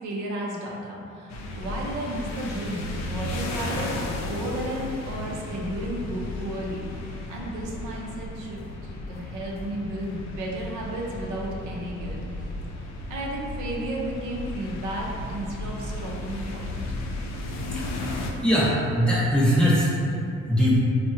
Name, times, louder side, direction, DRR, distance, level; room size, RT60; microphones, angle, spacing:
voice 1, 0.0-6.9 7.3-12.2 13.1-16.9, right 1 dB, 80° right, -2 dB, 0.6 m, -33 dB
sound 1, 1.3-18.3, left 2 dB, 65° left, 0.4 m, -34 dB
voice 2, 18.4-19.9 20.5-20.8, equal, 5° left, -8 dB, 0.8 m, -21 dB
3.5 x 2.0 x 2.7 m, 2.5 s
cardioid pair, 90°, 30 cm